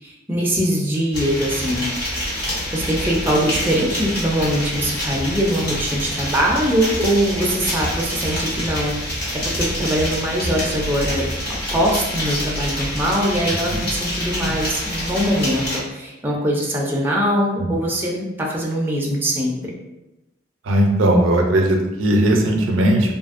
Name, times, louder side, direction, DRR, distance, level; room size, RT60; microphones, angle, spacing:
voice 1, 0.0-1.9 2.7-9.3 9.5-11.2 11.7-19.7, equal, 10° right, -2 dB, 0.3 m, -22 dB
sound 1, 1.1-15.8, equal, 55° left, 1.4 m, -26 dB
voice 2, 20.7-23.1, right 1 dB, 85° right, 2 dB, 0.4 m, -17 dB
2.7 x 2.5 x 2.4 m, 0.99 s
head